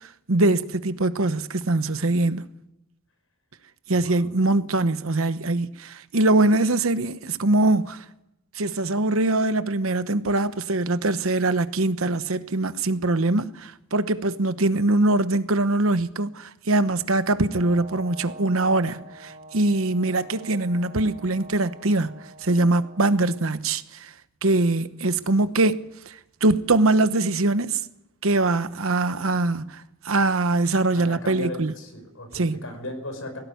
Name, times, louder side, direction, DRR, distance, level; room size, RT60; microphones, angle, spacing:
voice 1, 0.0-2.5 3.9-8.0 8.5-24.1 24.4-27.8 28.2-31.7 32.3-32.6, right 2 dB, 80° right, 1.1 m, -23 dB
voice 2, 3.9-4.3 30.9-33.4, left 1 dB, 75° left, 5.7 m, -37 dB
Brass instrument, 17.4-23.5, right 1 dB, 30° right, 6.3 m, -45 dB
18.0 x 17.0 x 9.4 m
head